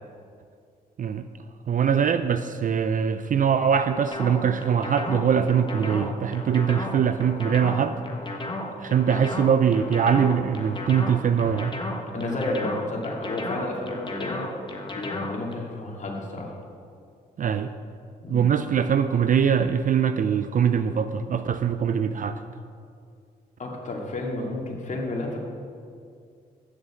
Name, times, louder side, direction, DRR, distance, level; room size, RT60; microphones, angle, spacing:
voice 1, 1.7-8.0 8.8-11.7 17.4-17.7 18.3-22.4, right 7 dB, 50° right, 10 dB, 0.5 m, -22 dB
sound 1, 4.1-15.5, left 2 dB, 30° left, 1.5 m, -34 dB
voice 2, 12.1-14.5 14.9-16.5 18.2-18.4 23.6-25.4, left 2 dB, 45° left, -1 dB, 2.4 m, -31 dB
7.3 x 6.8 x 8.2 m, 2.3 s
supercardioid pair, 65°, 18 cm